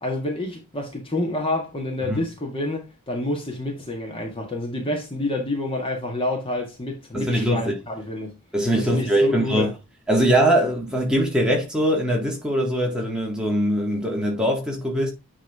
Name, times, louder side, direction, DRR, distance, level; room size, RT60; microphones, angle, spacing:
voice 1, 0.0-8.3 8.8-9.7, left 2 dB, 25° left, 1.7 m, -28 dB
voice 2, 7.1-7.7 8.5-9.7 10.1-15.1, equal, 5° right, 1.7 m, -22 dB
9.8 x 3.7 x 3.5 m
head